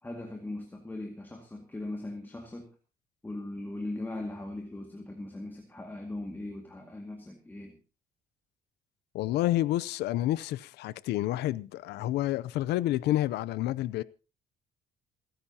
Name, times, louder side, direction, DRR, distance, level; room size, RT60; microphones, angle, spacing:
voice 1, 0.0-2.8 3.2-7.8, left 2 dB, 10° left, 2.0 m, -39 dB
voice 2, 9.1-14.0, left 15 dB, 80° left, 0.6 m, -29 dB
28.5 x 10.5 x 2.9 m
cardioid pair, 110°, 17 cm